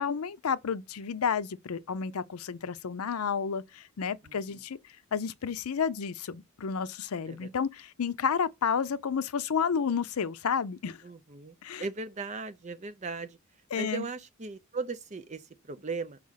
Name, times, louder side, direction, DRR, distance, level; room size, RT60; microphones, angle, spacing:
voice 1, 0.0-4.8 5.1-11.0 11.6-11.8 13.7-14.0, left 6 dB, 90° left, 0.5 m, -31 dB
voice 2, 4.2-4.6 7.3-7.5 11.0-13.4 13.7-16.2, right 4 dB, 35° right, 0.5 m, -38 dB
4.8 x 4.7 x 5.6 m
head